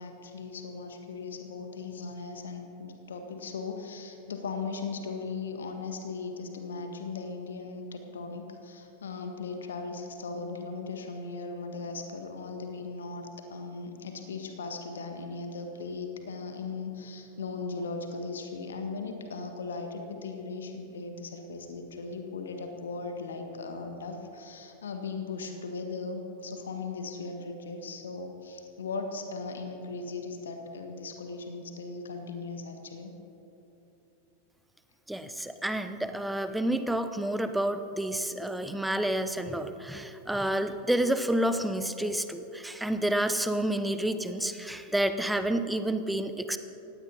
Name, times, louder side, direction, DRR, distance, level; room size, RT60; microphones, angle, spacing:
voice 1, 0.0-33.1, left 4 dB, 65° left, 5 dB, 1.5 m, -38 dB
voice 2, 35.1-46.6, right 1 dB, 5° right, 10 dB, 0.8 m, -29 dB
19.0 x 15.5 x 4.2 m, 3.0 s
figure-of-eight pair, 90°, 0 cm